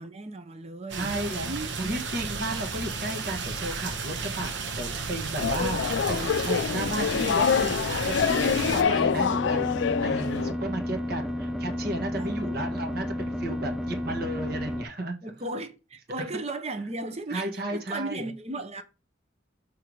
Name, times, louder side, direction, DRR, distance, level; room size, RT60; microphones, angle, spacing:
voice 1, 0.0-1.1 1.4-1.7 12.1-12.7 15.2-18.8, right 2 dB, 35° right, 0.8 m, -36 dB
voice 2, 0.9-1.5 1.8-9.6 10.0-15.1 17.3-18.3, right 1 dB, 55° right, 1.4 m, -33 dB
sound 1, 0.9-8.8, right 4 dB, 75° right, 1.1 m, -33 dB
sound 2, 5.4-10.5, left 6 dB, 70° left, 0.4 m, -26 dB
sound 3, 8.6-14.9, left 1 dB, ahead, 0.5 m, -32 dB
6.7 x 3.5 x 4.6 m
head